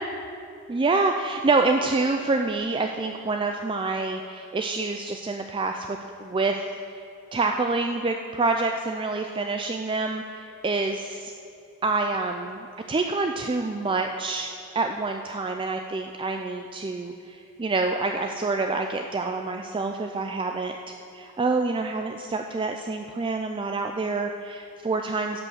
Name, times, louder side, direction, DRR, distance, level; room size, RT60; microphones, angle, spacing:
voice 1, 0.7-6.6 7.0-7.1 7.3-11.3 11.8-14.5 14.7-25.4, right 3 dB, 20° right, 4 dB, 0.4 m, -27 dB
15.5 x 5.4 x 6.4 m, 2.5 s
head